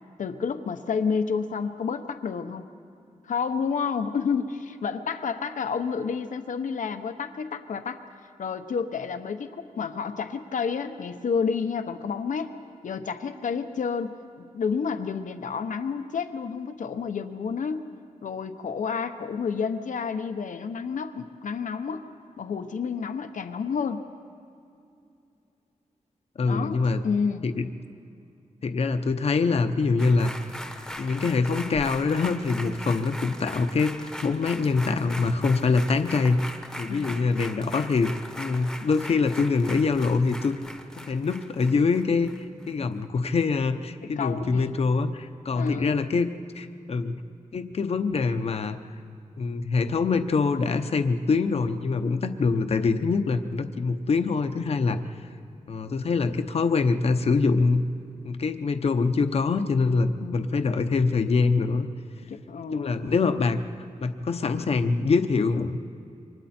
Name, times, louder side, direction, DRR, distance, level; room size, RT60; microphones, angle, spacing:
voice 1, 0.2-2.6 3.2-8.0 8.4-12.5 12.8-17.8 18.2-22.1 22.4-24.0 26.5-27.4 36.9-37.2 44.2-44.7 45.5-46.0 60.2-60.6 62.3-63.1, left 6 dB, 85° left, 8 dB, 1.0 m, -30 dB
voice 2, 26.4-27.0 27.4-27.7 28.6-30.3 31.0-36.4 36.8-40.6 41.0-46.3 46.5-47.2 47.5-48.8 49.4-55.0 55.7-57.8 58.2-61.9 62.2-62.3 62.7-63.6 64.0-65.8, left 4 dB, 55° left, 8 dB, 0.9 m, -24 dB
sound 1, 30.0-42.7 43.0-43.1, left 1 dB, 5° left, 1.0 m, -40 dB
28.0 x 24.5 x 4.4 m, 2.6 s
wide cardioid pair, 165°, 13 cm